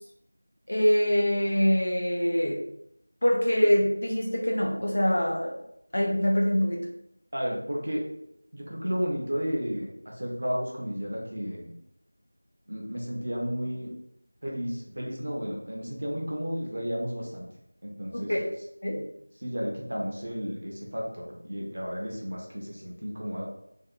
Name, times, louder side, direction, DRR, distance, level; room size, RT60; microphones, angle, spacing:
voice 1, 0.7-2.6 3.2-5.5 5.9-6.9 18.1-18.5 18.8-19.0, equal, 35° left, -2 dB, 0.4 m, -24 dB
voice 2, 7.3-8.0 8.5-11.7 12.7-13.9 14.4-17.5 17.8-18.3 19.4-23.4, equal, 40° right, -2 dB, 0.5 m, -32 dB
2.5 x 2.1 x 2.4 m, 0.78 s
figure-of-eight pair, 180°, 0 cm